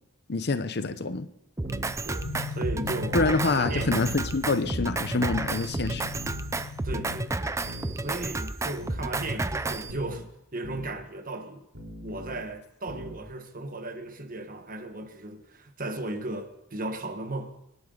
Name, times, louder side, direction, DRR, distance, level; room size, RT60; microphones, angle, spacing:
voice 1, 0.3-1.3 3.1-6.1, left 3 dB, 50° left, 0.8 m, -26 dB
Drum kit, 1.6-9.9, right 2 dB, 15° right, 0.4 m, -31 dB
sound 1, 1.6-2.0 2.8-3.5 3.9-4.2 4.6-5.0 5.8-6.5 6.9-7.2 7.6-8.0 8.8-9.5 9.9-10.2 10.6-10.9 11.8-12.4 12.9-13.2, right 1 dB, 65° right, 3.7 m, -40 dB
voice 2, 2.0-4.1 4.4-4.5 6.8-7.6 8.0-11.7 12.0-17.6, right 2 dB, 40° right, 1.3 m, -36 dB
sound 2, 2.2-7.3, left 5 dB, 75° left, 1.3 m, -40 dB
25.5 x 11.5 x 3.9 m
head